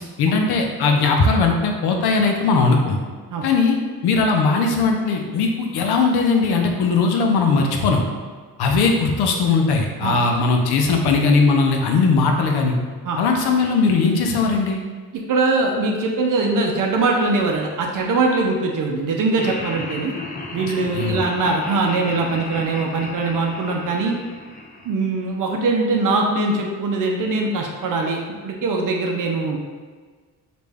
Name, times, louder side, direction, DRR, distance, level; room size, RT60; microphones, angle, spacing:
voice 1, 0.0-3.0 3.4-3.8 4.0-8.0 8.6-12.8 13.2-14.8 20.9-21.2, left 4 dB, 75° left, 2 dB, 0.6 m, -19 dB
voice 2, 15.3-20.1 20.5-24.2 24.8-28.2 28.4-29.6, right 3 dB, 55° right, 1 dB, 0.6 m, -21 dB
Laughter, 19.4-25.5, left 2 dB, 20° left, 0.5 m, -35 dB
3.2 x 2.5 x 3.4 m, 1.5 s
cardioid pair, 70°, 39 cm